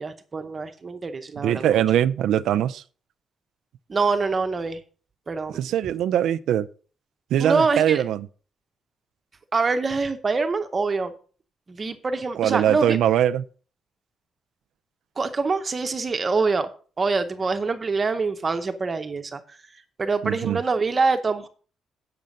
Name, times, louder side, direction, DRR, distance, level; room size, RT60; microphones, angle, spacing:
voice 1, 0.0-1.8 3.9-4.8 5.3-5.6 7.4-8.0 9.5-11.1 11.7-13.0 15.2-16.7 17.0-19.6 20.0-21.5, right 4 dB, 25° right, 0.7 m, -25 dB
voice 2, 1.4-2.8 5.5-6.7 7.3-8.3 12.4-13.4 20.2-20.6, right 11 dB, 80° right, 0.4 m, -22 dB
8.8 x 6.6 x 5.2 m
cardioid pair, 175°, 0 cm